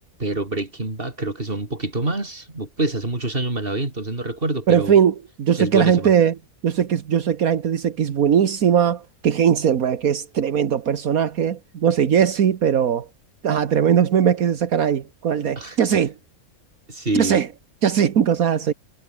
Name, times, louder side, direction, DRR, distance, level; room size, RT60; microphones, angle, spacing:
voice 1, 0.2-5.0 5.6-6.1 15.6-15.8 16.9-17.4, right 2 dB, 40° right, 4.3 m, -26 dB
voice 2, 4.7-6.3 6.6-13.1 13.4-16.1 17.1-17.5 17.8-18.7, right 8 dB, 75° right, 1.7 m, -19 dB
omnidirectional pair, 1.5 m